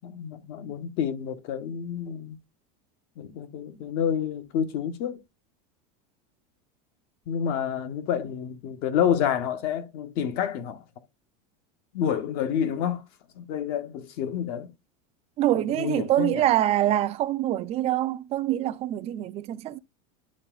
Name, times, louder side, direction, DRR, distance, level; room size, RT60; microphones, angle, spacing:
voice 1, 0.0-2.4 3.2-5.2 7.3-10.8 11.9-13.0 13.4-14.7 15.8-16.5, left 8 dB, 50° left, 1.0 m, -29 dB
voice 2, 15.4-19.8, right 13 dB, 30° right, 0.5 m, -25 dB
11.0 x 3.9 x 2.3 m
supercardioid pair, 145°, 20 cm